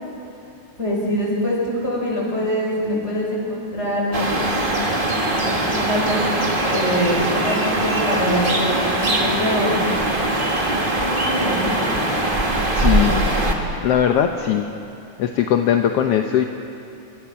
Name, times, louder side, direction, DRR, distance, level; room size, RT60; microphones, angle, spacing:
voice 1, 0.8-4.8 5.4-9.8 10.9-12.0 12.8-13.3, equal, 20° left, -3 dB, 6.4 m, -24 dB
sound 1, 4.1-13.6, right 1 dB, 20° right, 1.9 m, -21 dB
voice 2, 12.7-13.2 13.8-14.7 15.2-16.4, left 9 dB, 65° left, 5 dB, 1.6 m, -19 dB
27.0 x 25.5 x 5.9 m, 2.8 s
omnidirectional pair, 3.4 m